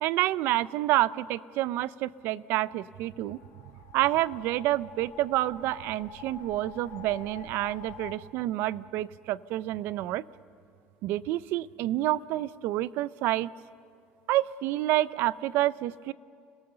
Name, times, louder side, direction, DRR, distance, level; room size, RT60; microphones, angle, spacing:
voice 1, 0.0-3.4 3.9-10.2 11.0-13.5 14.3-16.1, right 15 dB, 65° right, 19 dB, 0.5 m, -28 dB
sound 1, 3.0-8.1, left 7 dB, 70° left, 1.3 m, -48 dB
29.5 x 17.5 x 6.8 m, 2.3 s
cardioid pair, 155°, 4 cm